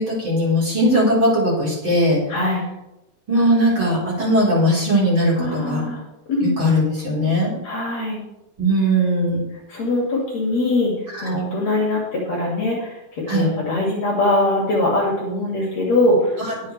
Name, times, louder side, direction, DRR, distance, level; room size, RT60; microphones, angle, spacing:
voice 1, 0.0-2.2 3.3-5.8 6.4-7.5 8.6-9.4 11.1-11.2 13.3-13.5 16.4-16.5, equal, 30° right, -5 dB, 4.6 m, -19 dB
voice 2, 2.3-2.6 5.4-6.0 6.3-6.5 7.6-8.2 9.7-10.9 11.2-16.4, left 2 dB, 45° left, -3 dB, 3.2 m, -22 dB
22.0 x 7.7 x 3.3 m, 0.94 s
omnidirectional pair, 4.7 m